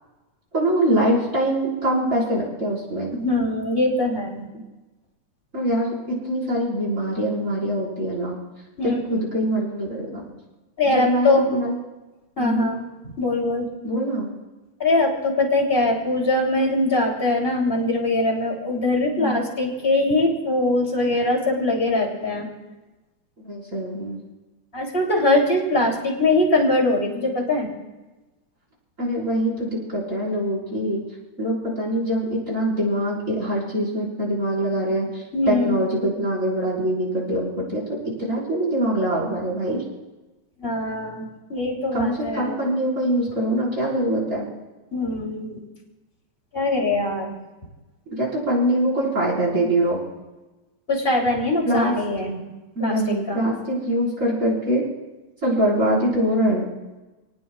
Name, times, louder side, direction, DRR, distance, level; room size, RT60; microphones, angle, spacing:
voice 1, 0.5-3.1 5.5-8.4 8.8-10.3 10.9-11.8 12.4-12.7 13.8-14.3 19.2-19.4 23.4-24.2 29.0-31.0 31.4-39.8 41.9-44.5 48.1-50.0 51.7-51.9 52.8-54.8 55.4-56.7, right 1 dB, 25° right, -5 dB, 5.5 m, -23 dB
voice 2, 3.1-4.5 8.8-9.2 10.8-11.5 12.4-13.7 14.8-22.5 24.7-27.7 35.3-35.8 40.6-42.6 44.9-45.6 46.5-47.3 50.9-52.4 52.8-53.4, left 2 dB, 20° left, -1 dB, 3.3 m, -22 dB
29.5 x 19.0 x 2.4 m, 1.1 s
omnidirectional pair, 3.4 m